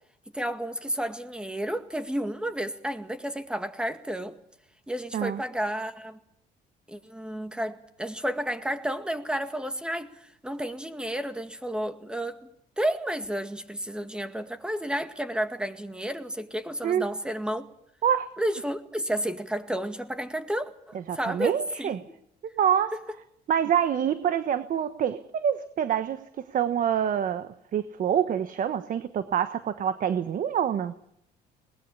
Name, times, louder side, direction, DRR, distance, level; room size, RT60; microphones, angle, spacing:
voice 1, 0.3-4.4 4.9-6.2 6.9-12.4 12.8-17.6 18.4-21.9, right 1 dB, 5° right, 8 dB, 2.0 m, -31 dB
voice 2, 21.1-22.0 22.6-22.9 23.5-30.9, right 9 dB, 50° right, 11 dB, 1.2 m, -26 dB
21.0 x 20.0 x 8.5 m, 0.74 s
cardioid pair, 110°, 17 cm